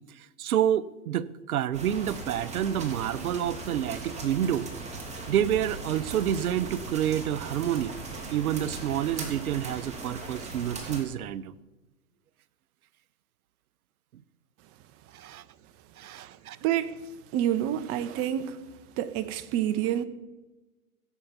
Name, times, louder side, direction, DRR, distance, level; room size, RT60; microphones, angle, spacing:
voice 1, 0.4-4.7 5.3-7.9 8.3-11.5 15.1-15.4 16.0-16.6, right 10 dB, 70° right, 0.8 m, -28 dB
sound 1, 1.7-11.0, right 3 dB, 15° right, 3.0 m, -39 dB
voice 2, 16.6-16.9 17.3-18.6 19.0-20.0, right 11 dB, 30° right, 1.0 m, -28 dB
16.0 x 8.3 x 7.3 m
hypercardioid pair, 120°, 46 cm